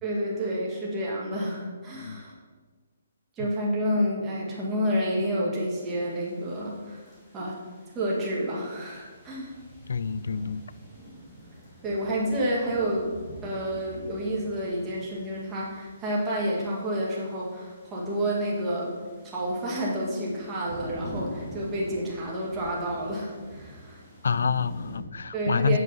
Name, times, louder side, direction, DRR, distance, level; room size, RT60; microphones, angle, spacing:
voice 1, 0.0-2.3 3.4-7.0 7.3-7.5 7.9-9.5 11.8-13.1 13.4-18.9 19.2-24.0 25.3-25.8, equal, 15° right, -5 dB, 1.8 m, -29 dB
voice 2, 1.9-2.3 9.9-10.6 24.2-25.8, left 6 dB, 75° left, 16 dB, 0.3 m, -27 dB
sound 1, 5.7-25.0, equal, 10° left, 2.4 m, -45 dB
8.0 x 5.3 x 5.5 m, 1.4 s
hypercardioid pair, 160°, 0 cm